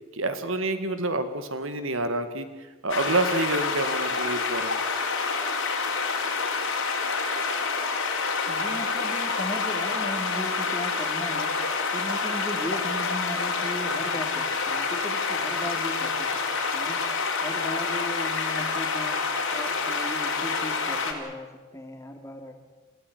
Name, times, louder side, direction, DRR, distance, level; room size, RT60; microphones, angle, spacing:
voice 1, 0.1-4.8, right 2 dB, 60° right, 9 dB, 2.1 m, -28 dB
sound 1, 2.9-21.1, left 4 dB, 65° left, 4.5 m, -28 dB
voice 2, 8.5-16.4 16.7-17.0 17.4-19.2 19.5-22.6, left 1 dB, 15° left, 4 dB, 2.9 m, -37 dB
28.5 x 16.5 x 9.7 m, 1.3 s
head